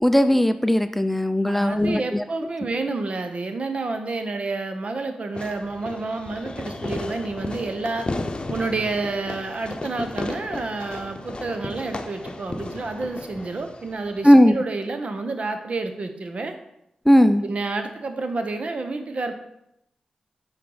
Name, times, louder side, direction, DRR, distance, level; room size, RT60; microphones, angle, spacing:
voice 1, 0.0-2.2 14.2-14.6 17.1-17.4, equal, 5° left, 10 dB, 0.4 m, -17 dB
voice 2, 1.4-8.1 8.5-16.5 17.4-19.3, right 3 dB, 55° right, 7 dB, 0.9 m, -29 dB
Fireworks, 5.3-14.4, left 2 dB, 45° left, 0.8 m, -34 dB
8.4 x 4.5 x 3.9 m, 0.81 s
cardioid pair, 45°, 2 cm